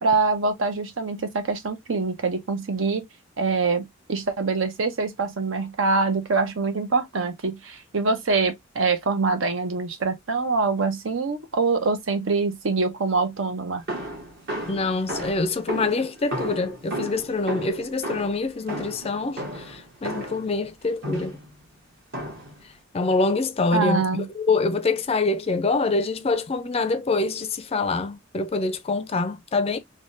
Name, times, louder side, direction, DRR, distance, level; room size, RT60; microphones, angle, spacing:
voice 1, 0.0-3.0 3.4-13.8 23.7-24.3, right 4 dB, 75° right, 0.7 m, -24 dB
sound 1, 13.9-20.5 21.0-21.5 22.1-22.6, right 1 dB, 55° right, 1.4 m, -33 dB
voice 2, 14.7-21.4 22.9-29.8, left 3 dB, 30° left, 0.4 m, -25 dB
3.4 x 2.2 x 2.5 m
head